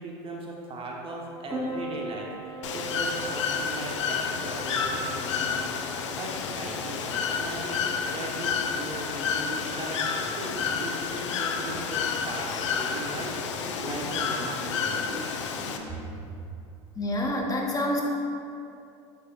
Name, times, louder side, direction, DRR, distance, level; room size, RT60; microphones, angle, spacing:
voice 1, 0.0-10.1 10.3-15.2, right 2 dB, 40° right, -1 dB, 1.2 m, -38 dB
Piano, 1.5-16.5, right 2 dB, 15° right, 1.5 m, -43 dB
Bird / Water, 2.6-15.8, left 6 dB, 90° left, 0.5 m, -30 dB
sound 1, 10.9-11.0 11.2-15.9, right 1 dB, 65° left, 1.4 m, -46 dB
voice 2, 17.0-18.0, left 1 dB, 25° left, -1 dB, 1.0 m, -27 dB
7.7 x 6.5 x 2.5 m, 2.6 s
hypercardioid pair, 85°, 15 cm